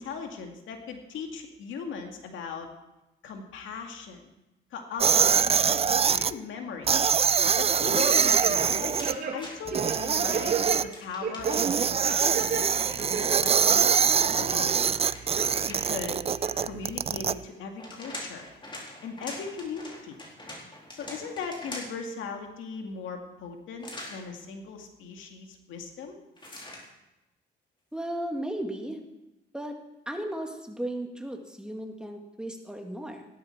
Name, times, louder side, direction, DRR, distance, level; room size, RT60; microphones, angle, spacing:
voice 1, 0.0-2.7 3.2-4.3 4.7-6.9 7.6-14.0 14.3-14.8 15.6-16.2 16.6-18.5 19.0-20.2 20.9-26.2, left 5 dB, 80° left, 3 dB, 2.2 m, -38 dB
sound 1, 5.0-6.3 6.9-9.1 9.7-10.8 11.4-17.3, right 7 dB, 30° right, 0.4 m, -24 dB
sound 2, 8.0-8.7 9.0-10.8 11.2-11.6 12.0-12.6 13.0-13.9 14.3-14.9 15.4-15.5 16.1-16.7 17.1-17.2, right 6 dB, 50° right, 2.7 m, -33 dB
sound 3, 9.0-10.0 10.9-12.0 13.8-16.1 17.5-22.1 23.8-24.2 26.4-26.9, left 1 dB, 25° left, 4.3 m, -43 dB
voice 2, 27.9-29.0 29.5-29.8 30.1-33.3, right 1 dB, 5° right, 2 dB, 2.2 m, -35 dB
16.0 x 12.5 x 4.6 m, 0.94 s
cardioid pair, 90°, 20 cm